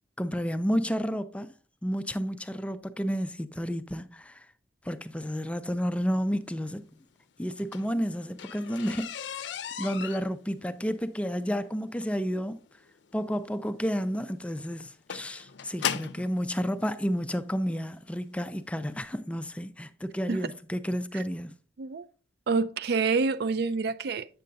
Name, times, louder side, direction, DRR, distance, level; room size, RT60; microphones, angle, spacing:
voice 1, 0.2-1.5 1.8-4.5 4.8-6.8 7.4-9.4 9.8-12.6 13.1-21.5, equal, 5° left, 0.3 m, -31 dB
sound 1, 7.4-16.3 17.2-17.3 17.9-18.1 18.4-18.5 18.8-18.9, left 8 dB, 85° left, 0.5 m, -37 dB
voice 2, 22.5-24.3, right 4 dB, 65° right, 0.4 m, -27 dB
8.3 x 6.7 x 2.6 m
head